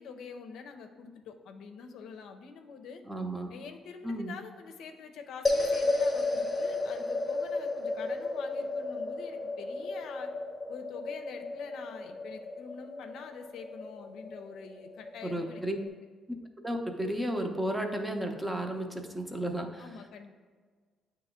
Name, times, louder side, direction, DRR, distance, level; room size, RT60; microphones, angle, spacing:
voice 1, 0.0-3.0 3.5-10.3 10.7-15.6 19.3-20.3, left 5 dB, 80° left, 6 dB, 0.5 m, -46 dB
voice 2, 3.1-3.5 4.0-4.3 15.2-15.8 16.3-16.4 16.6-19.9, right 1 dB, 10° right, 4 dB, 0.7 m, -33 dB
sound 1, 5.4-15.9, left 2 dB, 25° left, 0.9 m, -33 dB
8.9 x 3.0 x 3.6 m, 1.5 s
cardioid pair, 90°, 0 cm